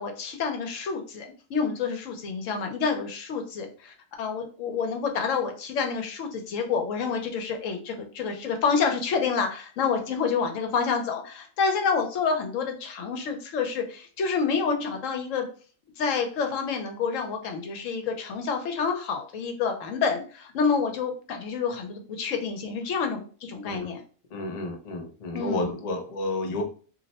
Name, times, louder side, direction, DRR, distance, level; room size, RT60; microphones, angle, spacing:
voice 1, 0.0-15.5 16.0-24.0 25.3-25.8, left 5 dB, 70° left, 5 dB, 1.0 m, -28 dB
voice 2, 24.3-26.6, left 2 dB, 85° left, 3 dB, 0.3 m, -31 dB
2.5 x 2.1 x 4.0 m, 0.40 s
omnidirectional pair, 1.5 m